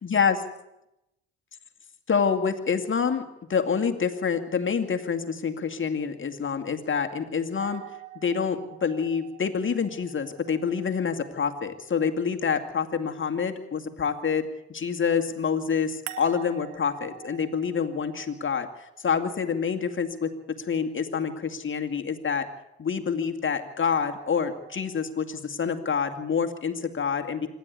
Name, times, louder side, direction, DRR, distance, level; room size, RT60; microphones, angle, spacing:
voice 1, 0.0-0.4 2.1-3.2 3.5-7.8 8.2-22.5 22.8-27.5, left 6 dB, 40° left, 6 dB, 2.3 m, -27 dB
sound 1, 7.6-12.6 16.1-20.2 23.9-25.1, right 16 dB, 80° right, 1.5 m, -47 dB
25.5 x 12.0 x 8.4 m, 0.88 s
hypercardioid pair, 55°, 32 cm